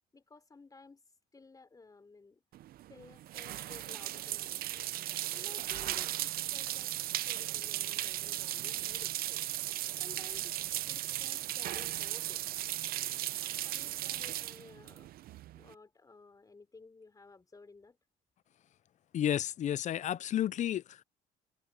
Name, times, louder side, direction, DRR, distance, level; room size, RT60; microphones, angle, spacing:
voice 1, 0.1-1.0 1.3-2.4 2.9-4.9 5.3-6.9 7.2-9.4 10.0-12.4 13.6-15.1 15.5-18.0, left 3 dB, 20° left, 3.9 m, -55 dB
sound 1, 2.5-15.7, right 14 dB, 65° right, 0.6 m, -37 dB
voice 2, 19.1-21.0, left 10 dB, 45° left, 0.5 m, -32 dB
cardioid pair, 110°, 17 cm